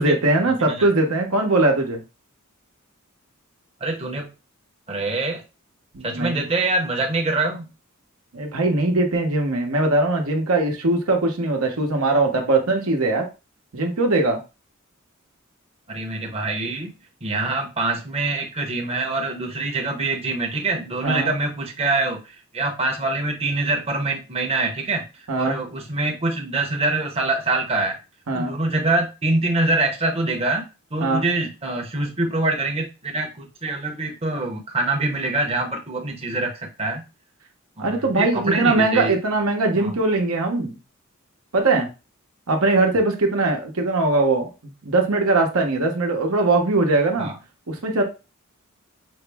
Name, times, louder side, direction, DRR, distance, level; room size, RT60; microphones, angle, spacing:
voice 1, 0.0-2.0 5.9-6.4 8.3-13.3 13.7-14.4 21.0-21.3 25.3-25.6 28.3-28.5 31.0-31.2 37.8-40.8 41.5-41.9 42.5-47.3 47.7-48.0, right 2 dB, 80° right, 2 dB, 0.9 m, -21 dB
voice 2, 3.8-4.3 4.9-5.4 6.0-7.7 15.9-16.9 17.2-28.0 28.3-30.7 30.9-37.0 37.8-39.1 39.7-40.0 47.2-47.3, right 2 dB, 30° right, 0 dB, 0.7 m, -25 dB
5.1 x 2.0 x 3.4 m, 0.29 s
head